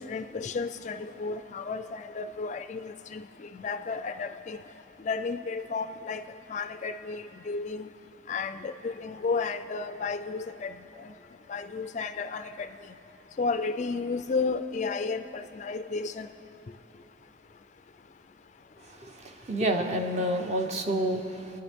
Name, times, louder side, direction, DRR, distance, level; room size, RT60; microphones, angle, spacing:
voice 1, 0.1-4.6 5.0-6.2 6.5-7.9 8.3-11.1 11.5-12.7 13.4-16.3, left 4 dB, 35° left, 10 dB, 0.3 m, -33 dB
voice 2, 19.0-21.6, right 1 dB, 35° right, 4 dB, 0.8 m, -29 dB
27.0 x 9.9 x 3.5 m, 2.9 s
head